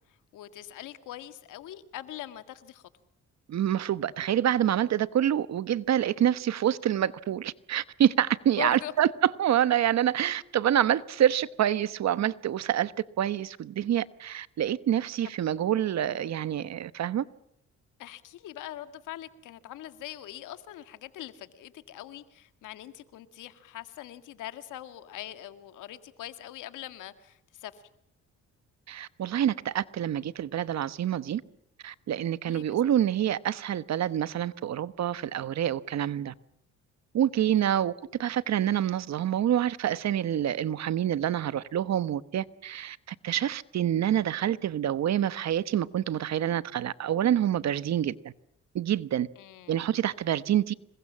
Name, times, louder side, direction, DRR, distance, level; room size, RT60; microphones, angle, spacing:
voice 1, 0.3-2.8 8.6-8.9 18.0-27.8 32.4-32.8 37.6-37.9 49.4-49.9, left 13 dB, 85° left, 1.9 m, -42 dB
voice 2, 3.5-12.9 13.2-17.2 28.9-31.4 31.8-36.3 37.1-37.9 38.2-48.3 48.7-49.3 49.7-50.7, right 10 dB, 60° right, 1.1 m, -27 dB
27.0 x 22.0 x 7.4 m
cardioid pair, 90°, 30 cm